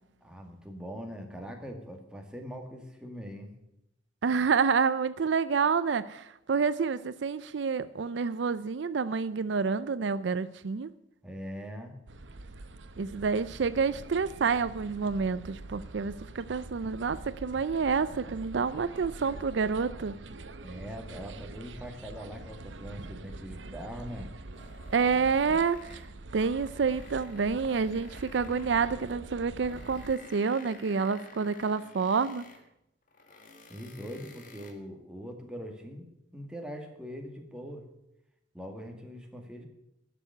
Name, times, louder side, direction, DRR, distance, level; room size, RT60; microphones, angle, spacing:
voice 1, 0.2-3.5 11.2-11.9 20.6-24.3 33.7-36.0 36.3-37.9 38.5-39.7, equal, 5° right, 2 dB, 1.9 m, -42 dB
voice 2, 4.2-10.9 13.0-20.2 24.9-26.0 26.3-32.4, right 5 dB, 70° right, 15 dB, 0.5 m, -28 dB
sound 1, 12.1-30.1, right 2 dB, 90° right, 0.8 m, -45 dB
sound 2, 24.5-26.2 26.5-29.2 29.6-32.7 33.1-34.7, left 3 dB, 45° left, 1.8 m, -52 dB
11.5 x 6.9 x 9.5 m, 0.81 s
head